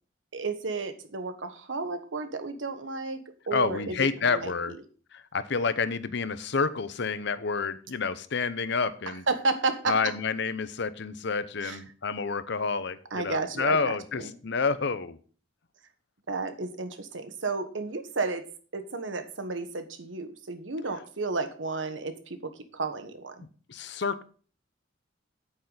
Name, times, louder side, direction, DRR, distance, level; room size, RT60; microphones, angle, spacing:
voice 1, 0.3-4.8 9.3-10.0 11.6-11.8 13.1-14.0 14.2-14.3 16.3-18.4 18.7-23.4, right 3 dB, 80° right, 9 dB, 1.3 m, -32 dB
voice 2, 3.5-4.7 5.1-9.2 9.9-15.2 23.7-24.2, left 5 dB, 65° left, 13 dB, 0.8 m, -29 dB
9.1 x 8.8 x 4.0 m, 0.40 s
head